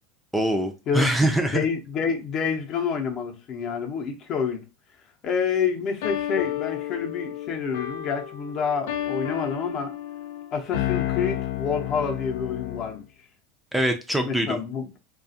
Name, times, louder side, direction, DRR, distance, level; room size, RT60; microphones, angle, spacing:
voice 1, 0.3-1.6 13.7-14.6, right 1 dB, 5° right, 0.4 m, -23 dB
voice 2, 0.9-1.2 1.5-4.6 5.2-9.9 10.5-13.0 14.2-14.9, left 6 dB, 45° left, 0.6 m, -28 dB
sound 1, 6.0-13.0, left 12 dB, 80° left, 0.3 m, -31 dB
2.4 x 2.3 x 2.7 m
supercardioid pair, 110°, 0 cm